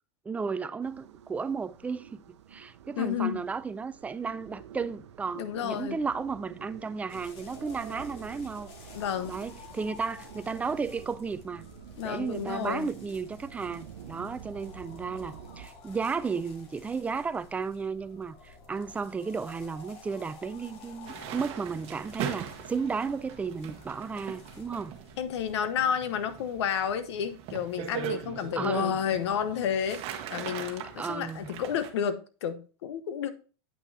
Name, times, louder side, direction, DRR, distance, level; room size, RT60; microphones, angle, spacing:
voice 1, 0.3-2.2 2.5-8.7 9.2-11.7 12.0-24.9 28.6-29.0 31.0-31.5, right 5 dB, 10° right, 0.4 m, -34 dB
sound 1, 0.8-15.7, right 9 dB, 90° right, 0.8 m, -48 dB
voice 2, 3.0-3.4 5.3-6.0 8.9-9.4 12.0-12.9 25.2-33.3, left 8 dB, 75° left, 0.9 m, -31 dB
sound 2, 7.1-25.6, left 3 dB, 40° left, 1.7 m, -51 dB
sound 3, 21.1-31.9, right 9 dB, 45° right, 1.1 m, -40 dB
8.5 x 5.8 x 2.7 m
supercardioid pair, 130°, 14 cm